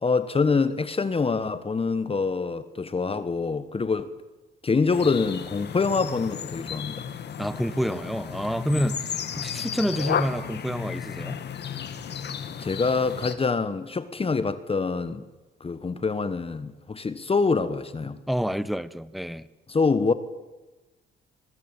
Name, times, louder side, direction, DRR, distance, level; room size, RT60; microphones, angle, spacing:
voice 1, 0.0-4.1 4.6-7.1 8.7-8.9 12.4-15.3 15.6-18.2 19.7-20.1, left 4 dB, 30° left, 1.4 m, -25 dB
sound 1, 4.9-13.4, left 8 dB, 60° left, 2.2 m, -33 dB
voice 2, 7.4-11.4 18.3-19.4, equal, ahead, 1.1 m, -28 dB
25.5 x 20.5 x 9.1 m
cardioid pair, 90°, 20 cm